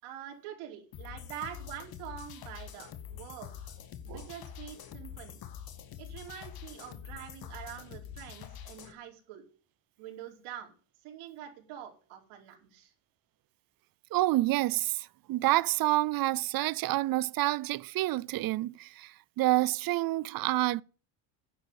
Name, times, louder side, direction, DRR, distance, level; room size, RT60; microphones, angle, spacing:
voice 1, 0.0-3.7 4.0-5.4 6.0-9.4 10.0-10.7 11.0-12.9, right 10 dB, 80° right, 4.5 m, -45 dB
sound 1, 0.9-8.9, left 9 dB, 45° left, 1.8 m, -45 dB
voice 2, 14.1-20.8, right 17 dB, 45° right, 0.5 m, -28 dB
10.5 x 8.1 x 7.9 m
cardioid pair, 125°, 49 cm